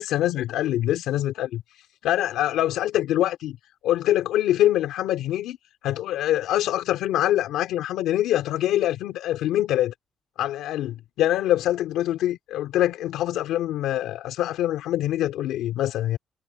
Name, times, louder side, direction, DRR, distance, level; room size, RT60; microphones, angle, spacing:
voice 1, 0.0-1.6 2.0-3.6 3.8-5.6 5.8-9.9 10.4-16.2, left 13 dB, 90° left, 2.7 m, -24 dB
cardioid pair, 90°, 0 cm